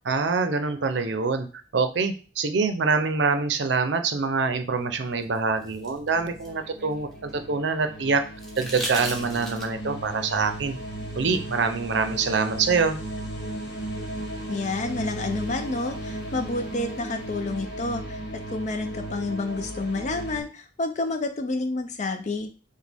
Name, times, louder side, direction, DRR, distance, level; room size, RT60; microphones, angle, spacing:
voice 1, 0.1-1.5 1.7-8.2 8.6-10.8 11.2-13.0, right 4 dB, 70° right, 8 dB, 0.6 m, -25 dB
sound 1, 4.9-20.4, right 1 dB, 70° left, 1.2 m, -36 dB
sound 2, 5.2-7.5 8.4-9.9 11.6-11.7, equal, ahead, 0.9 m, -37 dB
voice 2, 14.5-18.2 18.5-22.5, left 2 dB, 40° left, 7 dB, 0.4 m, -29 dB
5.1 x 2.2 x 3.4 m, 0.36 s
head